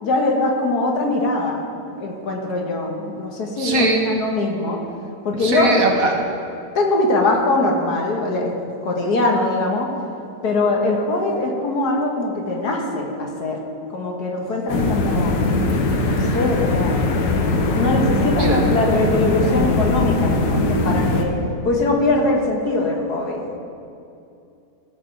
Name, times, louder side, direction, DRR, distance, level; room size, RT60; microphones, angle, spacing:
voice 1, 0.0-1.6 1.9-4.8 5.2-5.7 6.7-8.5 8.8-9.9 10.4-13.6 13.9-15.3 16.1-17.0 17.8-21.4 21.6-23.4, left 2 dB, 65° left, 1 dB, 1.7 m, -22 dB
voice 2, 3.6-4.1 5.4-6.1 18.3-18.6, right 2 dB, 60° right, 1 dB, 1.3 m, -20 dB
sound 1, 14.7-21.2, left 2 dB, 80° left, 1.6 m, -20 dB
15.5 x 6.7 x 3.8 m, 2.6 s
omnidirectional pair, 1.9 m